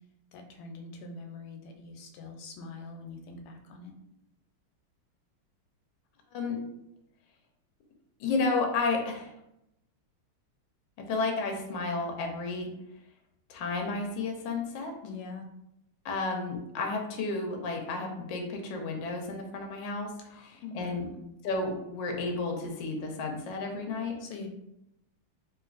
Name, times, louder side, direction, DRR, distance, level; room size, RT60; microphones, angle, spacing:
voice 1, 0.3-3.9 15.0-15.5 20.3-21.2 24.2-24.5, left 3 dB, 90° left, 3 dB, 1.5 m, -44 dB
voice 2, 8.2-9.3 11.0-12.7 13.5-14.9 16.0-20.1 20.4-21.0 21.4-24.2, left 3 dB, 70° left, 2 dB, 1.2 m, -32 dB
3.2 x 3.0 x 2.4 m, 0.83 s
omnidirectional pair, 2.4 m